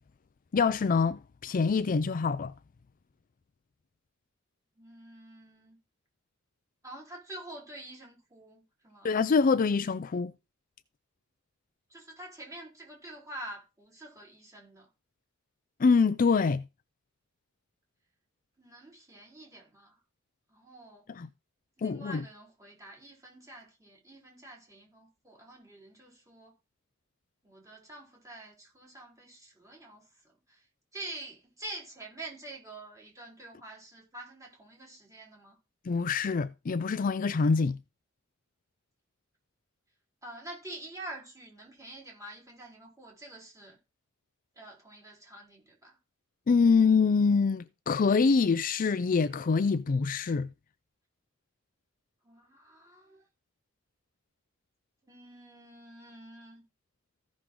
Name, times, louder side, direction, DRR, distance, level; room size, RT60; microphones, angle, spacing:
voice 1, 0.5-2.5 9.0-10.3 15.8-16.6 21.1-21.3 21.8-22.2 35.9-37.8 46.5-50.5, left 5 dB, 40° left, 0.4 m, -25 dB
voice 2, 4.8-5.8 6.8-9.1 11.9-14.9 18.6-19.9 20.5-21.1 21.8-26.5 27.4-30.1 30.5-30.6 30.9-35.6 40.2-43.8 44.6-46.0 52.2-53.2 55.0-56.6, right 1 dB, 15° right, 4.1 m, -47 dB
15.0 x 6.2 x 3.7 m
head